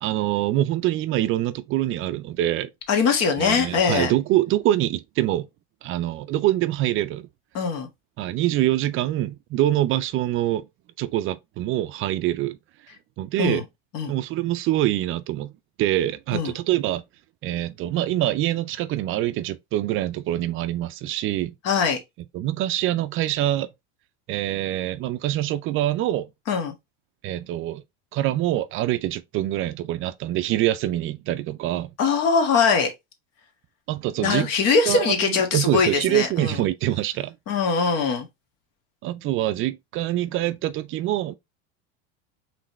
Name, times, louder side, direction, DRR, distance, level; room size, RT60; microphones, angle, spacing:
voice 1, 0.0-2.7 3.4-5.5 5.8-7.3 8.2-10.7 11.0-12.6 13.2-13.6 14.1-15.5 15.8-17.0 17.4-21.5 22.3-23.7 24.3-26.3 27.2-27.8 28.1-31.9 33.9-34.5 34.9-37.3 39.0-41.3, right 14 dB, 45° right, 0.4 m, -25 dB
voice 2, 2.9-4.1 7.5-7.9 13.4-13.6 13.9-14.1 16.3-16.5 21.6-22.0 26.5-26.7 32.0-32.9 34.2-36.5 37.5-38.3, left 5 dB, 55° left, 1.6 m, -22 dB
4.9 x 3.2 x 3.1 m
supercardioid pair, 125°, 30 cm